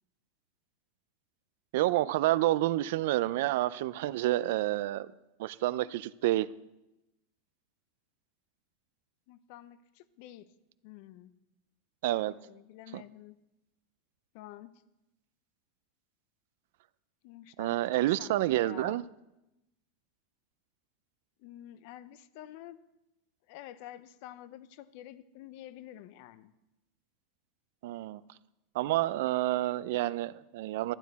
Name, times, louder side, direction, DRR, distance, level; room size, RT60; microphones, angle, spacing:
voice 1, 1.7-5.1 5.4-6.5 12.0-12.3 12.9-13.0 17.6-19.0 27.8-28.2 28.7-30.9, right 15 dB, 65° right, 0.4 m, -29 dB
voice 2, 9.3-10.5 10.8-11.3 12.5-13.4 14.3-14.7 17.2-19.1 21.4-22.8 23.5-26.5, left 13 dB, 50° left, 0.6 m, -49 dB
11.5 x 11.5 x 4.1 m
supercardioid pair, 160°, 0 cm